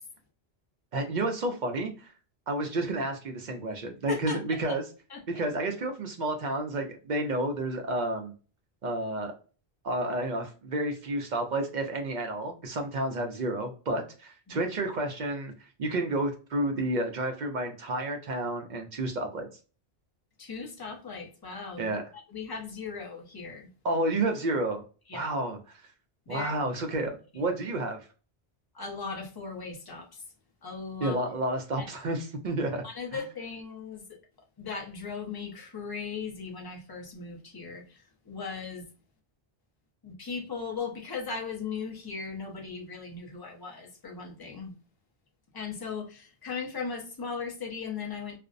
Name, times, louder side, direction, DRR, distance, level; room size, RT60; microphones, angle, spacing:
voice 1, 0.9-2.1 2.5-4.8 5.4-8.3 8.8-9.3 9.8-19.5 21.8-22.0 23.8-24.8 25.1-25.8 26.3-28.0 31.0-32.8 33.1-33.2, right 2 dB, 55° right, 0.6 m, -30 dB
voice 2, 4.1-4.8 5.1-5.2 14.5-14.6 20.4-23.7 25.1-25.3 26.3-26.5 27.3-27.5 28.7-30.2 30.6-31.2 31.8-31.9 32.8-34.2 34.6-38.9 40.0-44.7 45.5-48.4, left 5 dB, 25° left, 0.6 m, -38 dB
2.5 x 2.0 x 2.4 m
omnidirectional pair, 1.1 m